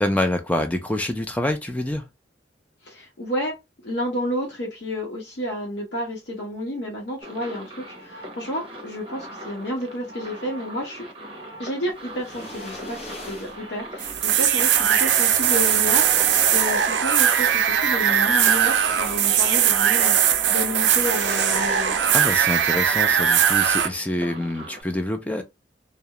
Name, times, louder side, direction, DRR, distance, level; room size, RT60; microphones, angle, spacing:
voice 1, 0.0-2.1 22.1-25.4, left 1 dB, 10° left, 0.3 m, -26 dB
voice 2, 2.8-3.6 3.8-11.0 11.6-20.2 20.5-22.0, equal, 70° left, 0.7 m, -31 dB
sound 1, 7.2-24.8, right 1 dB, 30° right, 0.7 m, -40 dB
sound 2, 12.2-13.7 14.7-14.8 15.2-16.8 17.9-19.6 19.9-20.1 20.9-22.5 22.8-22.9, left 2 dB, 35° left, 0.7 m, -40 dB
sound 3, 14.0-23.9, right 9 dB, 75° right, 0.4 m, -20 dB
2.3 x 2.0 x 2.8 m
head